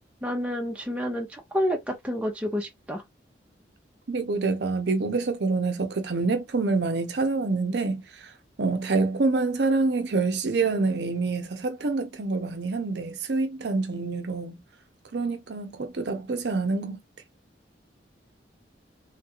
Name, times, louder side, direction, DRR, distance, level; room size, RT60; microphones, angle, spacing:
voice 1, 0.2-3.0, equal, 5° right, 0.6 m, -29 dB
voice 2, 4.1-8.3 8.6-14.6 15.1-17.0, right 3 dB, 60° right, 0.6 m, -26 dB
3.2 x 2.4 x 2.9 m
head